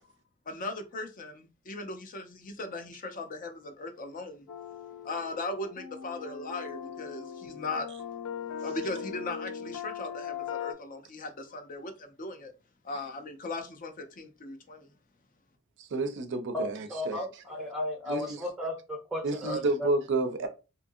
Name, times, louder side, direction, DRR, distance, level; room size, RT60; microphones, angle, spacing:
voice 1, 0.5-4.5 5.0-7.9 8.6-12.5 12.8-14.9, left 2 dB, 40° left, 0.5 m, -38 dB
sound 1, 4.5-10.7, left 8 dB, 85° left, 0.5 m, -39 dB
voice 2, 15.8-17.2 18.1-18.4 19.2-20.5, right 2 dB, 60° right, 0.5 m, -30 dB
voice 3, 16.5-19.9, left 1 dB, ahead, 0.6 m, -35 dB
2.7 x 2.5 x 2.6 m
head